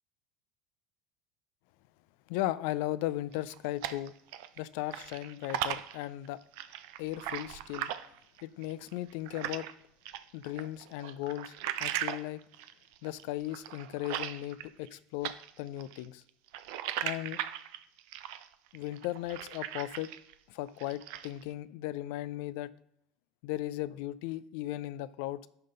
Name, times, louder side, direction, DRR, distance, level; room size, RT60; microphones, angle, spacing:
voice 1, 2.3-4.1 4.6-6.4 7.0-7.9 8.4-9.7 10.3-11.5 11.8-12.4 13.0-16.2 17.0-17.4 18.7-20.1 20.5-22.7 23.4-25.5, left 15 dB, 65° left, 0.4 m, -36 dB
sound 1, 3.3-4.6 4.9-9.7 10.1-15.0 15.2-20.3 20.7-21.4, right 12 dB, 65° right, 0.5 m, -38 dB
11.0 x 3.8 x 3.8 m
hypercardioid pair, 70°, 0 cm